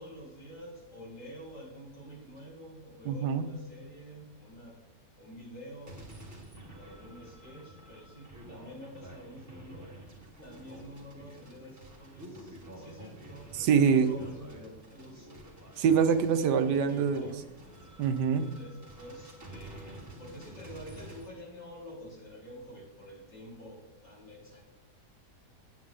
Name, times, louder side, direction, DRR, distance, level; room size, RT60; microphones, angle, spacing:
voice 1, 0.0-4.8 5.2-6.2 6.7-9.8 10.4-13.5 13.8-15.3 16.6-17.4 18.4-24.7, equal, 90° left, -5 dB, 4.6 m, -48 dB
voice 2, 3.1-3.5 13.5-14.1 15.8-17.3 18.0-18.5, right 6 dB, 75° right, 8 dB, 1.4 m, -25 dB
sound 1, 5.9-21.3, right 1 dB, 10° right, 2.0 m, -49 dB
9.4 x 9.2 x 3.7 m, 1.0 s
omnidirectional pair, 1.8 m